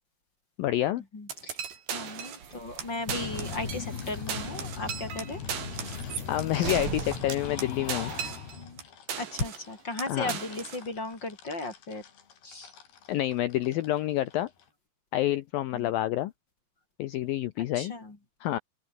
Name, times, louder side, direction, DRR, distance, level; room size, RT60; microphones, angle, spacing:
voice 1, 0.6-1.0 6.3-8.3 10.1-10.4 13.1-14.5 15.1-16.3 17.0-17.9 18.4-18.6, left 14 dB, 80° left, 2.0 m, -28 dB
voice 2, 1.1-1.6 1.9-5.4 6.5-6.8 8.5-8.8 9.1-12.0 12.4-12.7 15.7-15.9 17.6-18.2, left 2 dB, 25° left, 4.6 m, -36 dB
sound 1, 1.3-2.5 2.8-2.9 3.1-4.0 4.3-8.8 9.1-9.7 10.0-10.8, right 8 dB, 70° right, 5.8 m, -37 dB
sound 2, 2.4-8.4, right 7 dB, 45° right, 2.0 m, -42 dB
sound 3, 3.1-14.6, left 8 dB, 60° left, 5.1 m, -40 dB
open air
omnidirectional pair, 5.2 m